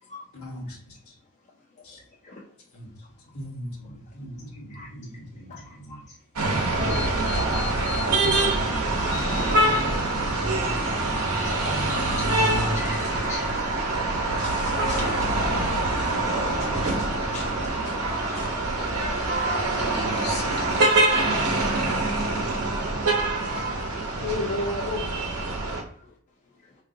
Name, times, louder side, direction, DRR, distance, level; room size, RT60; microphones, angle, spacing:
voice 1, 0.3-1.1 1.8-2.0 2.7-2.9 3.3-6.0 8.2-9.9 15.5-15.6 16.0-16.7, equal, 70° left, 0 dB, 1.0 m, -41 dB
voice 2, 5.5-6.0 6.9-8.5 8.8-9.9 10.7-10.9 11.4-11.5 11.8-13.5 14.4-15.3 15.6-15.8 17.3-17.5 18.3-18.5 20.9-21.2, left 4 dB, 30° left, -2 dB, 0.4 m, -39 dB
sound 1, 6.4-25.8, right 2 dB, 80° right, 0.8 m, -25 dB
voice 3, 19.2-21.0 24.2-25.1, left 2 dB, 50° left, 1 dB, 0.8 m, -32 dB
3.5 x 2.6 x 2.5 m, 0.65 s
head